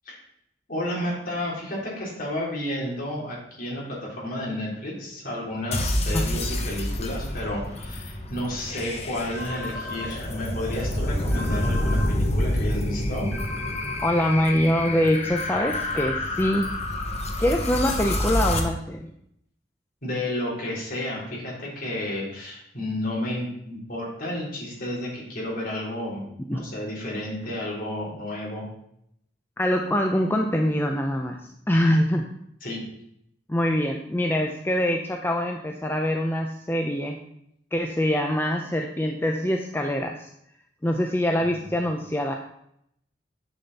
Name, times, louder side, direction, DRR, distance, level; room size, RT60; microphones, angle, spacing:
voice 1, 0.7-13.3 20.0-26.2 26.5-28.7 32.6-32.8 41.6-41.7, left 1 dB, 50° left, -5 dB, 3.7 m, -31 dB
sound 1, 5.7-18.6, left 1 dB, 35° left, 1.1 m, -28 dB
sound 2, 9.3-10.1 11.3-12.1 13.3-14.1 15.3-16.1, left 2 dB, 75° right, 2.7 m, -36 dB
voice 2, 14.0-16.7 17.4-19.1 26.5-26.6 29.6-32.3 33.5-37.2 37.7-40.3 40.8-42.3, equal, 10° left, 2 dB, 0.6 m, -24 dB
8.4 x 6.8 x 4.1 m, 0.74 s
head